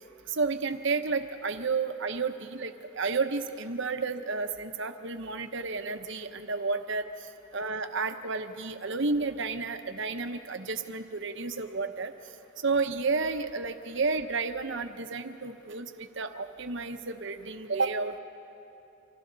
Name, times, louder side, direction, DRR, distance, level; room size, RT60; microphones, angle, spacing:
voice 1, 0.3-7.1 7.5-12.1 12.6-18.2, right 4 dB, 60° right, 7 dB, 1.0 m, -31 dB
29.5 x 25.5 x 4.0 m, 2.8 s
head